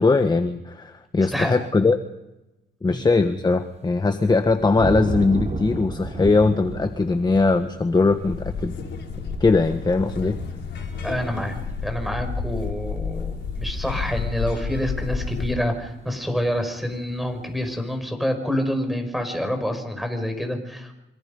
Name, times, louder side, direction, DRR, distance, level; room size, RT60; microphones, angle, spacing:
voice 1, 0.0-2.0 2.8-8.7 9.4-10.4, left 3 dB, 20° left, 8 dB, 1.4 m, -20 dB
sound 1, 3.7-17.9, right 3 dB, 35° right, 4.5 m, -36 dB
sound 2, 8.1-15.5, left 5 dB, 65° left, 4.6 m, -31 dB
voice 2, 11.0-11.6 11.8-20.9, equal, ahead, 6 dB, 6.1 m, -27 dB
26.5 x 25.5 x 5.5 m, 0.96 s
cardioid pair, 90°, 20 cm